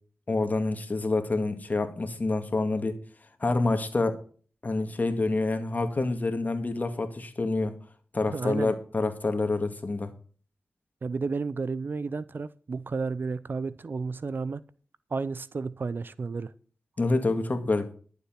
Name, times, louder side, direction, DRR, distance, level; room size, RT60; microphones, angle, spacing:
voice 1, 0.3-3.0 3.4-4.2 4.6-7.8 8.1-10.1 17.0-17.9, left 3 dB, 40° left, 2.1 m, -27 dB
voice 2, 8.3-8.7 11.0-14.6 15.1-16.5, right 4 dB, 55° right, 0.6 m, -32 dB
11.5 x 7.2 x 5.8 m
cardioid pair, 55°, 4 cm